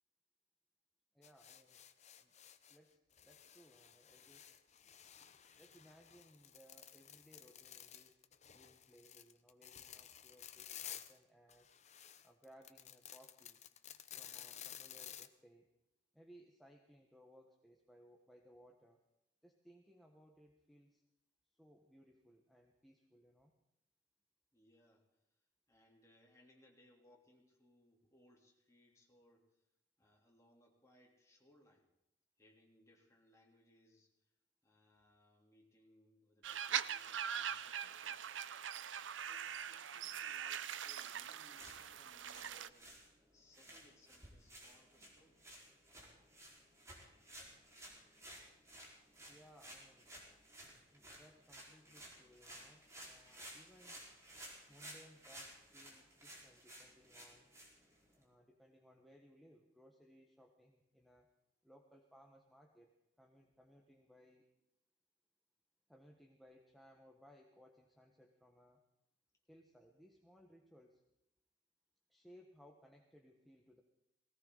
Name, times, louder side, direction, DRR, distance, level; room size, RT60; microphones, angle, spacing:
voice 1, 1.1-1.8 2.2-2.3 2.7-4.5 5.6-11.7 12.2-13.6 14.1-15.7 16.1-19.0 19.4-21.0 21.5-23.5 49.3-50.1 50.9-54.0 54.7-57.5 58.1-61.3 61.6-62.9 63.2-64.4 65.9-68.8 69.5-71.0 72.1-73.8, equal, ahead, 1 dB, 1.3 m, -64 dB
sound 1, 1.2-2.8 3.1-11.2 11.5-15.3, left 10 dB, 40° left, 0.8 m, -54 dB
voice 2, 24.5-29.7 30.0-31.9 32.4-34.3 34.6-38.4 39.2-42.9 43.3-45.4, left 1 dB, 15° left, -1 dB, 3.5 m, -69 dB
sound 2, 36.4-42.7, right 9 dB, 90° right, 0.6 m, -42 dB
sound 3, 41.4-58.2, right 1 dB, 15° right, 4.7 m, -56 dB
19.0 x 17.5 x 4.1 m, 0.86 s
head